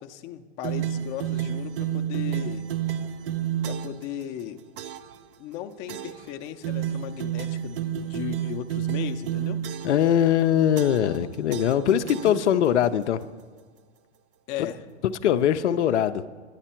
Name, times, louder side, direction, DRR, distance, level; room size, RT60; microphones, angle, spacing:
voice 1, 0.0-2.6 3.6-4.6 5.4-7.8 8.1-9.6 14.5-14.8, left 11 dB, 35° left, 6 dB, 0.6 m, -36 dB
sound 1, 0.6-4.1 4.8-5.2 5.9-6.3 6.6-10.1 10.8-11.2 11.5-12.8, right 10 dB, 55° right, 0.6 m, -30 dB
voice 2, 9.8-13.2 15.0-16.2, left 10 dB, 80° left, 10 dB, 0.5 m, -22 dB
10.0 x 8.7 x 4.4 m, 1.5 s
hypercardioid pair, 115°, 34 cm